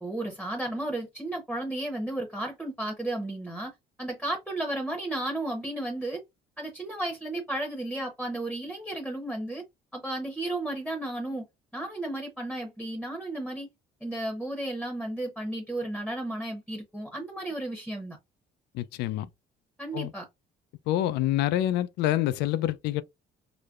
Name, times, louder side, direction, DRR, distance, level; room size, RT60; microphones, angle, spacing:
voice 1, 0.0-3.7 4.0-6.2 6.6-9.6 9.9-11.4 11.7-13.7 14.0-18.2 19.8-20.3, right 1 dB, ahead, 0.8 m, -33 dB
voice 2, 18.7-19.3 19.9-20.1 20.9-23.0, left 13 dB, 85° left, 0.4 m, -27 dB
4.9 x 2.1 x 2.4 m
cardioid pair, 110°, 17 cm